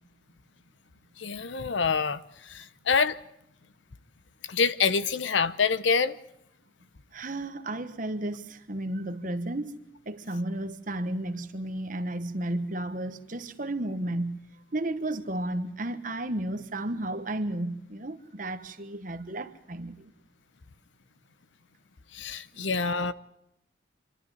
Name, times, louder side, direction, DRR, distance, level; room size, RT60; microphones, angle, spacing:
voice 1, 1.2-3.2 4.5-6.2 22.1-23.1, left 5 dB, 80° left, 0.8 m, -26 dB
voice 2, 7.1-14.4 14.7-20.1 22.5-22.7, right 1 dB, 45° right, 1.2 m, -33 dB
26.5 x 12.0 x 9.3 m
head